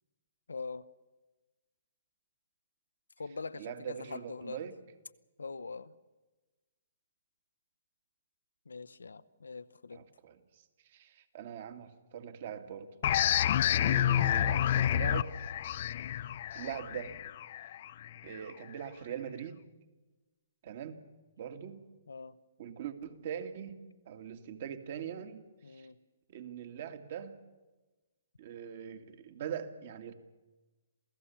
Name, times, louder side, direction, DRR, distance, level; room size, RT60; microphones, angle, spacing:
voice 1, 0.5-0.9 3.2-4.7 5.4-5.9 8.7-10.1 22.1-22.4 25.6-26.0, left 4 dB, 80° left, 14 dB, 0.9 m, -43 dB
voice 2, 3.5-4.8 9.9-12.9 13.8-15.3 16.5-17.2 18.2-19.6 20.6-21.0 21.4-21.8 22.6-25.9 26.3-27.4 28.4-30.1, right 8 dB, 50° right, 7 dB, 2.2 m, -42 dB
sound 1, 13.0-18.4, left 11 dB, 50° left, 0.6 m, -29 dB
27.5 x 16.5 x 7.2 m, 1.2 s
figure-of-eight pair, 125°, 0 cm